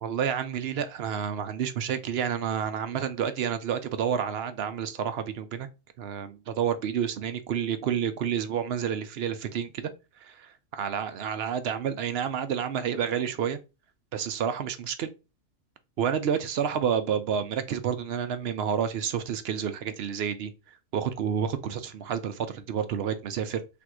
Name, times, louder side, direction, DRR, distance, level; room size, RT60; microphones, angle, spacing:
voice 1, 0.0-5.7 6.0-9.9 10.2-13.6 14.1-15.1 16.0-20.5 20.9-23.6, right 8 dB, 60° right, 0.7 m, -29 dB
3.5 x 2.6 x 4.6 m
omnidirectional pair, 1.3 m